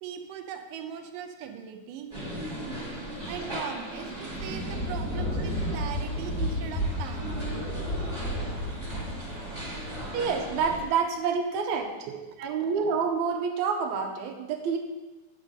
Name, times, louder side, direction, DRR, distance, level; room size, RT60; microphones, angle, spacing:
voice 1, 0.0-2.1 3.3-9.4 12.1-12.5, right 9 dB, 90° right, 5 dB, 2.3 m, -40 dB
sound 1, 2.1-10.9, right 1 dB, 15° right, 1.4 m, -37 dB
Thunder, 4.2-10.9, equal, ahead, 1.2 m, -33 dB
voice 2, 10.1-12.1 12.4-14.8, right 6 dB, 75° right, 2 dB, 2.1 m, -28 dB
9.0 x 3.9 x 6.5 m, 1.2 s
omnidirectional pair, 3.7 m